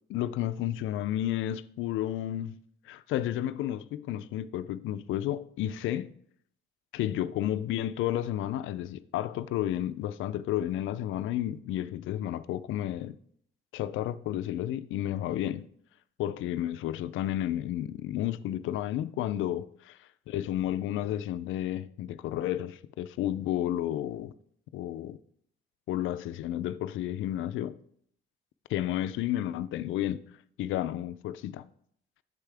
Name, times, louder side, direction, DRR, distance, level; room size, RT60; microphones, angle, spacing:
voice 1, 0.1-2.6 2.9-6.1 6.9-13.2 13.7-15.7 16.2-19.7 20.3-24.3 24.7-25.2 25.9-27.8 28.7-30.2 30.6-31.7, left 12 dB, 80° left, 0.4 m, -31 dB
8.2 x 6.7 x 3.4 m
cardioid pair, 90°, 20 cm